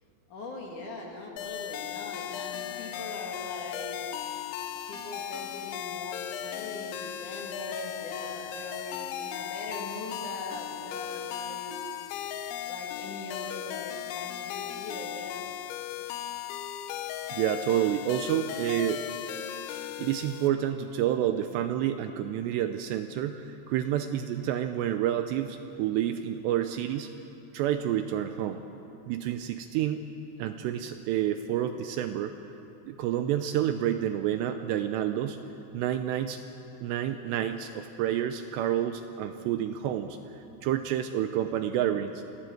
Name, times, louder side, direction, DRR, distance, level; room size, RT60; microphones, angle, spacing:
voice 1, 0.3-4.1 4.9-11.8 12.7-15.4, left 2 dB, 50° left, -1 dB, 2.9 m, -41 dB
sound 1, 1.4-20.5, left 11 dB, 80° left, 3.2 m, -37 dB
voice 2, 17.3-19.0 20.0-27.1 27.5-28.6 29.1-30.0 30.4-32.3 32.9-35.4 35.7-36.4 36.8-42.2, right 11 dB, 80° right, 8 dB, 2.6 m, -29 dB
25.0 x 16.5 x 7.8 m, 2.9 s
omnidirectional pair, 5.5 m